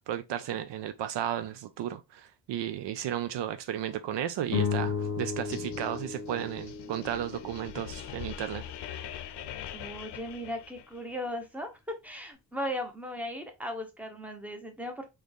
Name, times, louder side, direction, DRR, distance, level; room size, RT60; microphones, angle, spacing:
voice 1, 0.1-9.1, right 11 dB, 80° right, 0.6 m, -34 dB
sound 1, 4.5-9.0, left 6 dB, 40° left, 0.8 m, -35 dB
sound 2, 5.5-11.1, left 11 dB, 70° left, 0.6 m, -43 dB
voice 2, 9.7-11.7 12.0-15.1, equal, 5° right, 0.8 m, -37 dB
3.9 x 3.2 x 3.4 m
wide cardioid pair, 140°, 42 cm